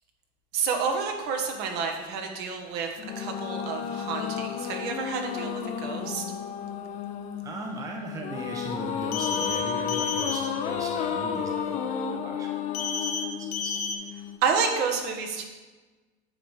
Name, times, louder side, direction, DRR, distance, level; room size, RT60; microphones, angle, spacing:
voice 1, 0.5-2.9 3.2-6.2 14.4-15.4, right 5 dB, 55° right, 3 dB, 1.3 m, -29 dB
sound 1, 3.0-14.4, left 7 dB, 40° left, 0.7 m, -32 dB
voice 2, 7.4-12.7 13.0-13.7, right 2 dB, 15° right, 2 dB, 0.8 m, -39 dB
sound 2, 9.1-9.6 9.9-10.4 12.7-13.2 13.5-13.9, left 5 dB, 80° left, 1.2 m, -31 dB
8.7 x 3.4 x 5.6 m, 1.3 s
supercardioid pair, 125°, 19 cm